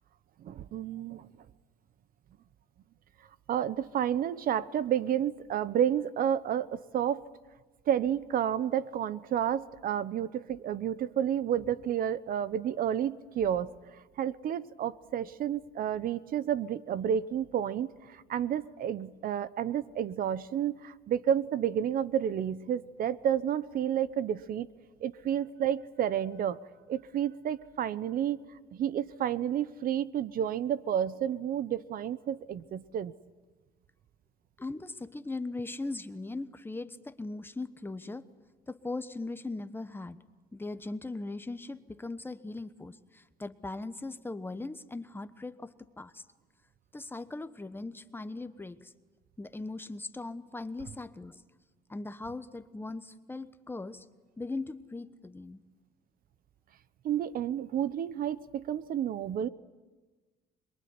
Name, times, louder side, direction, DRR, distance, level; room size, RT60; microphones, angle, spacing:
voice 1, 0.4-1.3 3.5-7.2 7.9-13.7 14.2-24.7 25.0-26.6 26.9-28.4 28.7-33.1 57.0-59.5, right 9 dB, 60° right, 17 dB, 1.0 m, -30 dB
voice 2, 34.6-38.3 38.7-40.2 40.5-46.2 46.9-48.9 49.4-51.4 51.9-54.0 54.4-55.6, left 2 dB, 15° left, 12 dB, 1.2 m, -39 dB
26.5 x 22.5 x 9.7 m, 1.2 s
cardioid pair, 110°, 17 cm